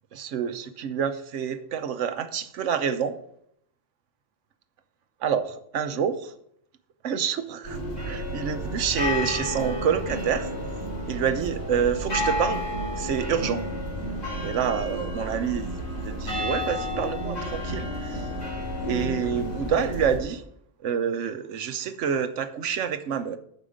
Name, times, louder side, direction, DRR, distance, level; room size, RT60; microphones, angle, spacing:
voice 1, 0.1-3.2 5.2-6.3 7.0-7.8 8.1-10.5 11.1-12.6 13.0-13.6 14.4-18.3 18.9-20.4 20.8-23.4, right 7 dB, 75° right, 11 dB, 1.1 m, -27 dB
sound 1, 7.6-20.2, equal, 85° left, 4.6 m, -31 dB
9.2 x 6.6 x 5.0 m, 0.71 s
omnidirectional pair, 1.3 m